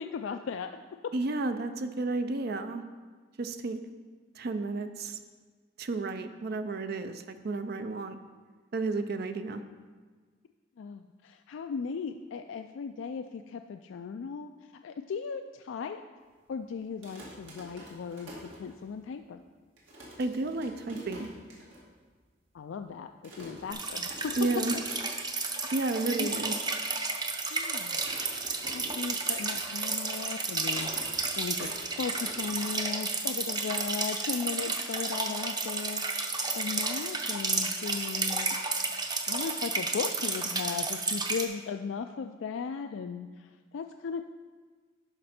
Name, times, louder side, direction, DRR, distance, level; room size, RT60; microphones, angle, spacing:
voice 1, 0.0-1.1 10.8-14.5 14.8-16.0 16.5-18.3 18.6-19.4 22.5-24.3 25.6-25.7 26.2-26.3 27.5-28.1 28.7-36.0 36.5-38.6 39.3-44.2, left 5 dB, 75° left, 7 dB, 0.3 m, -37 dB
voice 2, 1.1-2.8 3.4-3.8 4.4-5.2 5.8-8.2 8.7-9.6 20.2-21.3 24.4-24.7 25.7-26.5, right 3 dB, 55° right, 9 dB, 0.5 m, -32 dB
sound 1, 16.9-19.1 19.5-19.6 19.8-21.8 22.2-22.3 22.5-22.8 23.2-25.4 25.7-26.0 26.5-26.6 27.4-29.8 30.1-33.0, equal, 80° right, 2.5 m, -47 dB
sound 2, 23.7-41.4, right 3 dB, 20° right, 0.7 m, -32 dB
12.0 x 5.2 x 4.3 m, 1.5 s
head